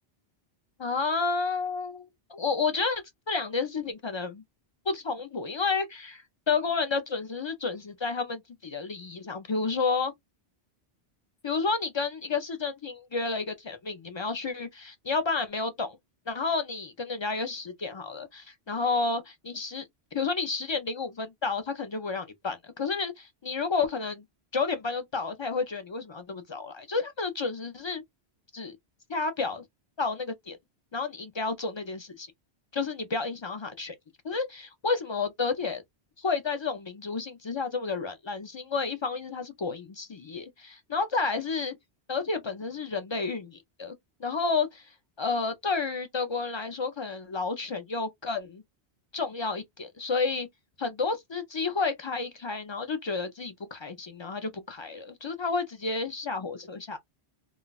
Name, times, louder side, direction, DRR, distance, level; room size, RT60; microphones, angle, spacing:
voice 1, 0.8-4.4 4.9-10.1 11.4-16.0 16.3-19.8 20.1-24.2 24.5-28.0 28.5-28.8 29.1-29.6 30.0-30.6 30.9-32.3 32.7-34.0 34.2-35.8 36.2-41.8 42.1-43.9 44.2-44.9 45.2-48.6 49.1-50.5 50.8-57.0, left 4 dB, 50° left, 0.3 m, -31 dB
2.3 x 2.1 x 3.9 m
omnidirectional pair, 1.1 m